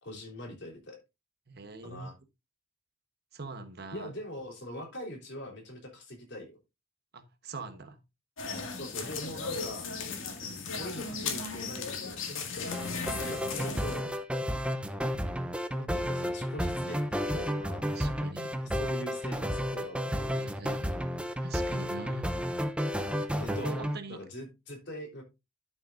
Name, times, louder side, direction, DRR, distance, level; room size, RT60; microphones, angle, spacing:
voice 1, 0.0-1.0 1.8-2.2 3.9-6.6 8.7-9.9 10.8-14.1 15.7-17.9 18.6-20.5 23.4-25.2, equal, 55° left, 3.6 m, -43 dB
voice 2, 1.5-2.1 3.3-4.1 7.1-8.0 10.4-10.6 17.9-18.5 20.3-20.9 21.4-22.4 23.4-24.2, right 3 dB, 50° right, 1.2 m, -43 dB
sound 1, 8.4-14.0, left 4 dB, 75° left, 2.0 m, -36 dB
sound 2, 12.7-24.0, equal, 5° right, 0.7 m, -32 dB
11.5 x 6.8 x 2.5 m
head